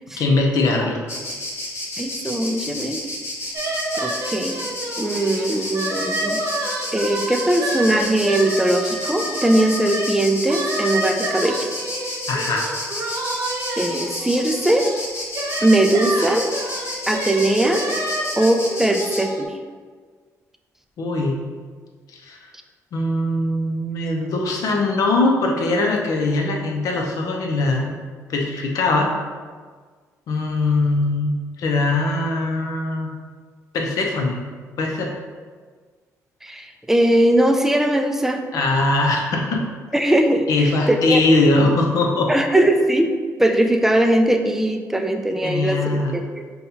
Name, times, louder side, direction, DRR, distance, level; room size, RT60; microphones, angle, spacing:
voice 1, 0.2-1.0 12.3-12.7 21.0-21.4 22.1-22.5 22.9-28.0 28.3-29.1 30.3-33.1 33.7-34.4 34.8-35.1 38.5-39.6 40.5-42.3 45.4-46.2, left 2 dB, 75° left, 1 dB, 0.6 m, -21 dB
Insect, 1.1-19.2, left 1 dB, 50° left, 1.4 m, -31 dB
voice 2, 2.0-3.0 4.0-4.6 5.0-6.4 6.9-11.7 13.8-14.9 15.6-16.5 17.1-17.9 18.4-19.6 36.4-38.4 39.9-41.2 42.3-46.4, right 1 dB, 5° right, 5 dB, 0.3 m, -20 dB
sound 1, 3.5-10.1 10.5-19.4, right 1 dB, 65° right, 0.7 m, -29 dB
5.3 x 2.3 x 2.8 m, 1.6 s
cardioid pair, 100°, 6 cm